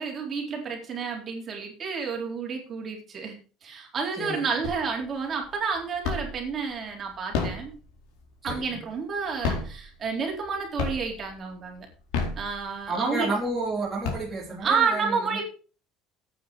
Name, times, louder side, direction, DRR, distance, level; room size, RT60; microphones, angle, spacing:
voice 1, 0.0-7.7 8.4-11.9 12.4-13.3 14.6-15.4, right 5 dB, 30° right, 1 dB, 4.0 m, -30 dB
sound 1, 4.6-5.1 5.5-6.5 7.1-8.9 9.3-10.5 10.8-11.3 11.9-13.0 13.5-13.6 13.8-14.7, left 4 dB, 85° left, 4.2 m, -31 dB
voice 2, 8.4-8.8 12.9-15.4, right 2 dB, 10° right, -5 dB, 3.2 m, -31 dB
10.0 x 9.0 x 5.2 m, 0.37 s
cardioid pair, 160°, 0 cm